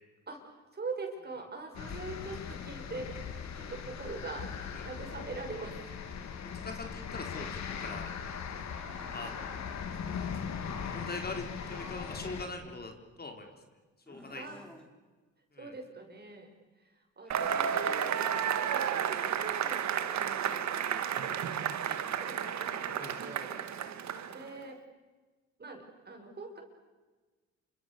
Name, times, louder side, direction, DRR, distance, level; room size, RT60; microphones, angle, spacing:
voice 1, 0.3-4.5 4.8-6.0 14.3-14.6 15.6-16.5 16.8-18.1 18.5-23.5 24.3-24.8 25.6-26.6, right 3 dB, 35° right, 3 dB, 6.3 m, -43 dB
sound 1, 1.7-12.5, left 6 dB, 65° left, 2.9 m, -39 dB
voice 2, 6.4-8.1 9.1-9.6 10.9-12.9 13.2-13.5 14.1-14.4 15.5-15.7 23.0-23.2, left 3 dB, 30° left, 4 dB, 3.8 m, -42 dB
sound 2, 8.7-9.6 11.7-12.4 14.0-14.9 17.2-18.0, equal, 5° left, 4.4 m, -52 dB
Cheering / Applause / Crowd, 17.3-24.5, right 8 dB, 65° right, 1.9 m, -32 dB
28.5 x 25.5 x 6.9 m, 1.3 s
cardioid pair, 90°, 30 cm